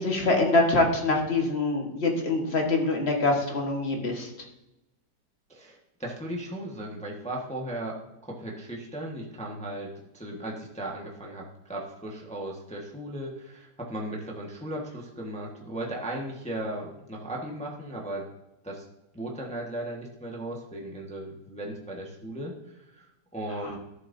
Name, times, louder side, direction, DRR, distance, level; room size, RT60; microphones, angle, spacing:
voice 1, 0.0-4.3, left 2 dB, 40° left, 1 dB, 1.6 m, -24 dB
voice 2, 5.5-8.0 8.2-18.2 18.6-18.8 19.1-23.8, right 1 dB, 5° left, -2 dB, 1.1 m, -36 dB
13.0 x 7.7 x 2.7 m, 0.92 s
omnidirectional pair, 1.9 m